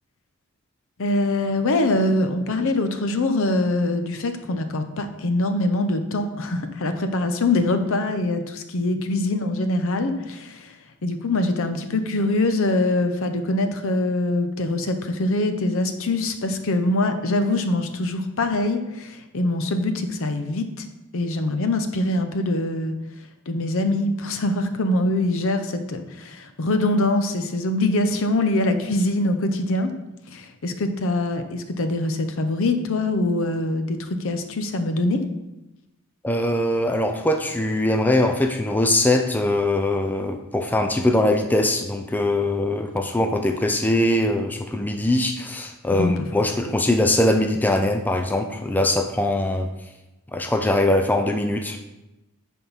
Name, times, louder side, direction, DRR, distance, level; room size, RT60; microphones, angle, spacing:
voice 1, 1.0-20.9 21.1-23.0 23.5-29.9 30.3-35.2 45.9-46.3, left 2 dB, 65° left, 8 dB, 0.7 m, -23 dB
voice 2, 36.2-49.7 50.3-51.8, left 1 dB, 10° left, 5 dB, 0.4 m, -22 dB
10.0 x 3.7 x 4.0 m, 0.98 s
head